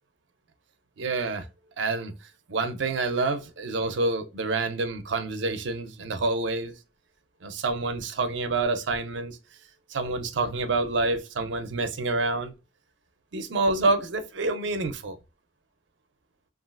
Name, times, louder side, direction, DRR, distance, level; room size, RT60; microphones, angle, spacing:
voice 1, 1.0-1.5 1.8-2.1 2.5-6.8 7.4-9.4 9.9-12.5 13.3-15.2, right 3 dB, 75° right, 0.5 m, -27 dB
3.1 x 2.4 x 2.4 m
head